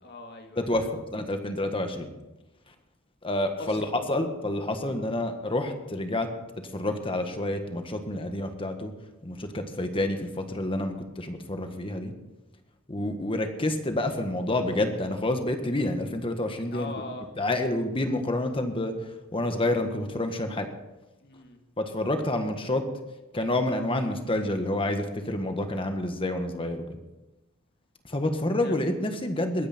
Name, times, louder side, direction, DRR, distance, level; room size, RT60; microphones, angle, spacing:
voice 1, 0.0-0.9 3.6-3.9 4.9-5.0 16.7-17.3 21.2-21.6 28.6-28.8, left 3 dB, 50° left, 4 dB, 2.0 m, -41 dB
voice 2, 0.6-2.1 3.2-6.3 6.7-8.9 9.2-12.1 12.9-16.9 17.4-18.9 19.3-20.7 21.8-22.8 23.3-26.8 28.1-29.7, left 1 dB, 25° left, 6 dB, 1.5 m, -28 dB
22.5 x 9.8 x 4.4 m, 1.0 s
head